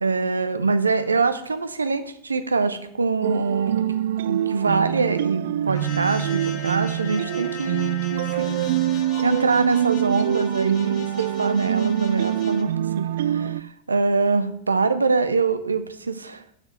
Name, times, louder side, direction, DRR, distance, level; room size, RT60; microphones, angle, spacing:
voice 1, 0.0-3.9 4.2-8.7 9.2-16.5, right 4 dB, 75° right, 11 dB, 0.7 m, -24 dB
sound 1, 3.2-13.6, right 12 dB, 55° right, 0.3 m, -25 dB
sound 2, 5.7-12.6, left 6 dB, 35° left, 1.2 m, -40 dB
7.6 x 6.2 x 7.8 m, 0.68 s
figure-of-eight pair, 90°, 0 cm